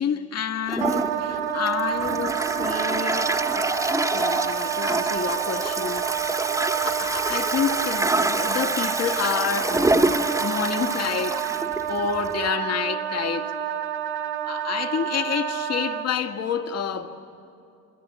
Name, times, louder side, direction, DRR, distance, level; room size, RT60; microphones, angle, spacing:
voice 1, 0.0-3.7 4.1-6.1 6.8-11.4 11.9-13.5 14.4-17.1, left 7 dB, 40° left, 1.7 m, -29 dB
Toilet flush, 0.7-12.5, right 2 dB, 10° right, 1.5 m, -27 dB
Wind instrument woodwind instrument, 0.8-16.1, right 11 dB, 70° right, 1.5 m, -29 dB
27.0 x 25.0 x 8.4 m
hypercardioid pair, 80°, 41 cm